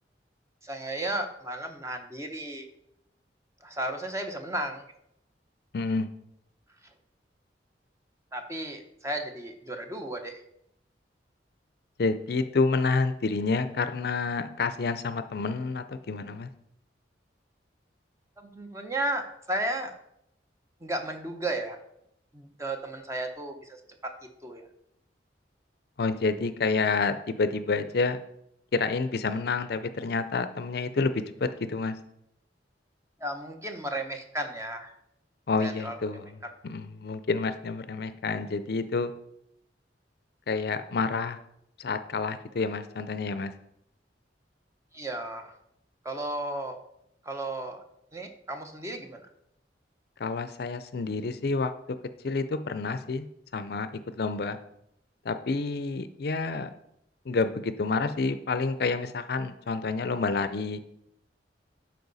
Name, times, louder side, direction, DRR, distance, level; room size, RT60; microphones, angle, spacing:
voice 1, 0.6-2.7 3.6-4.8 8.3-10.4 18.4-19.9 20.8-21.8 22.3-24.6 33.2-34.9 35.6-36.5 44.9-45.5 46.0-46.8 47.2-47.8 48.1-49.3, right 1 dB, 15° right, 5 dB, 0.8 m, -34 dB
voice 2, 5.7-6.1 12.0-16.5 26.0-28.2 28.7-32.0 35.5-36.3 36.6-39.1 40.5-41.4 41.8-43.5 50.2-51.7 52.2-53.2 53.5-53.9 54.2-54.6 55.3-56.7 57.3-60.8, left 4 dB, 60° left, 11 dB, 0.5 m, -28 dB
12.0 x 4.6 x 4.0 m, 0.78 s
head